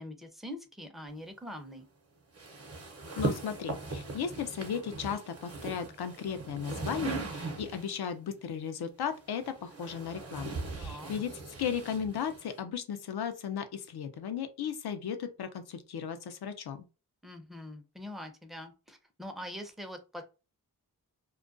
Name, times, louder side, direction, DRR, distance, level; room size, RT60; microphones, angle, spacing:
voice 1, 0.0-1.9 10.8-11.1 17.2-20.2, left 1 dB, ahead, 0.5 m, -43 dB
sound 1, 2.4-8.0 9.0-12.6, right 3 dB, 40° right, 0.7 m, -39 dB
voice 2, 3.2-16.9, left 7 dB, 75° left, 0.5 m, -36 dB
2.3 x 2.2 x 2.5 m
cardioid pair, 55°, 39 cm